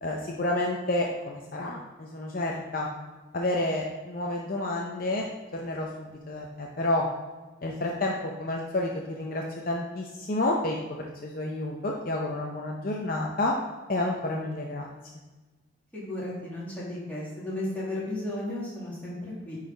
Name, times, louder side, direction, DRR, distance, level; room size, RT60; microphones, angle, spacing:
voice 1, 0.0-2.9 3.3-5.2 5.5-7.1 7.6-13.5 13.9-14.9, left 1 dB, 45° left, 0 dB, 0.6 m, -30 dB
voice 2, 15.9-19.6, left 1 dB, 10° left, -8 dB, 2.2 m, -34 dB
9.9 x 4.1 x 4.0 m, 1.2 s
head